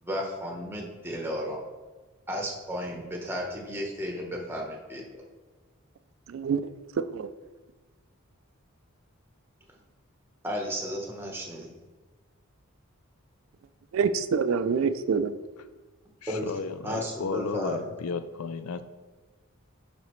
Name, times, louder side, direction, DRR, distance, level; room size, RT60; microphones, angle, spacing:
voice 1, 0.0-1.6 2.3-5.2 10.4-11.7 16.3-16.5 16.8-17.9, equal, 10° right, 1.0 m, -33 dB
voice 2, 6.3-6.7 7.0-7.3 13.9-15.4, right 5 dB, 65° right, 0.3 m, -26 dB
voice 3, 16.2-18.8, left 5 dB, 80° left, 0.5 m, -34 dB
10.5 x 4.1 x 3.1 m
head